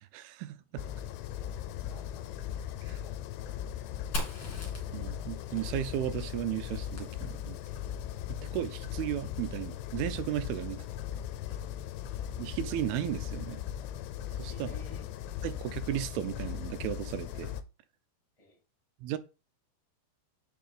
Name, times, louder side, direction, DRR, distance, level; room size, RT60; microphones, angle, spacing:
voice 1, 0.1-0.8 2.8-3.0 4.9-7.6 8.3-10.8 12.4-13.6 14.4-14.8 15.4-17.6 19.0-19.2, right 12 dB, 80° right, 2.3 m, -35 dB
voice 2, 0.7-2.4 3.0-3.1 10.8-10.9 14.5-15.0 18.4-18.6, equal, 10° left, 1.9 m, -55 dB
sound 1, 0.8-17.6, left 10 dB, 85° left, 2.7 m, -38 dB
Fire, 4.1-7.8, equal, 40° left, 2.2 m, -41 dB
8.4 x 6.1 x 3.5 m
omnidirectional pair, 4.9 m